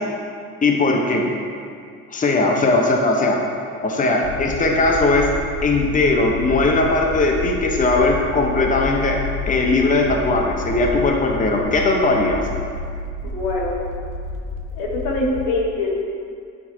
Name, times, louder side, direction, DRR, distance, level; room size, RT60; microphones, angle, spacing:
voice 1, 0.6-1.3 2.1-3.4 3.8-5.3 5.6-9.2 9.5-12.4, left 2 dB, 20° left, 0 dB, 0.8 m, -19 dB
sound 1, 4.2-15.5, left 4 dB, 50° left, 0.8 m, -30 dB
voice 2, 13.2-13.8 14.8-16.1, left 2 dB, 75° left, -3 dB, 1.2 m, -23 dB
8.8 x 4.1 x 2.7 m, 2.3 s
hypercardioid pair, 55°, 42 cm